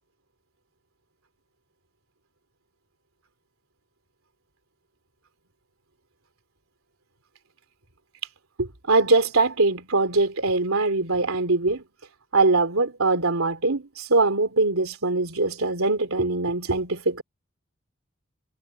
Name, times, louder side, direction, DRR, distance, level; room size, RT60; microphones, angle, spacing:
voice 1, 8.6-11.8 12.3-17.2, right 3 dB, 90° right, 3.2 m, -22 dB
head